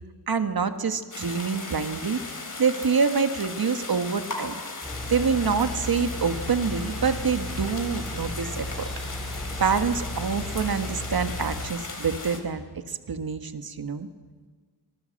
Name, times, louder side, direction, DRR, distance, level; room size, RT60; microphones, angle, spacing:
voice 1, 0.3-2.2 2.6-4.5 5.1-8.9 9.6-12.6 12.9-14.1, right 5 dB, 60° right, 9 dB, 1.6 m, -26 dB
sound 1, 1.1-12.4, left 3 dB, 50° left, 3.5 m, -37 dB
sound 2, 4.8-11.7, left 1 dB, ahead, 4.2 m, -35 dB
25.5 x 19.0 x 7.8 m, 1.5 s
wide cardioid pair, 115°, 40 cm